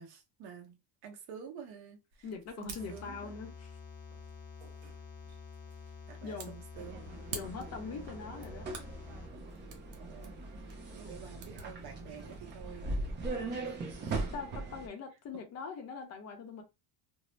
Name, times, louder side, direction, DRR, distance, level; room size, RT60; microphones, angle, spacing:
voice 1, 0.0-2.3 2.6-3.3 6.1-7.1 10.0-10.4 10.9-12.9 13.6-13.8 14.0-14.3 15.3-15.4, right 7 dB, 55° right, 0.9 m, -49 dB
sound 1, 2.1-12.4, right 5 dB, 90° right, 1.0 m, -51 dB
voice 2, 2.2-3.7 6.2-6.5 7.3-8.7 14.3-16.6, left 5 dB, 35° left, 0.7 m, -42 dB
sound 2, 2.8-9.3, left 5 dB, 70° left, 0.8 m, -49 dB
sound 3, 6.8-14.9, right 2 dB, 25° right, 0.5 m, -40 dB
2.7 x 2.0 x 3.0 m
cardioid pair, 165°, 46 cm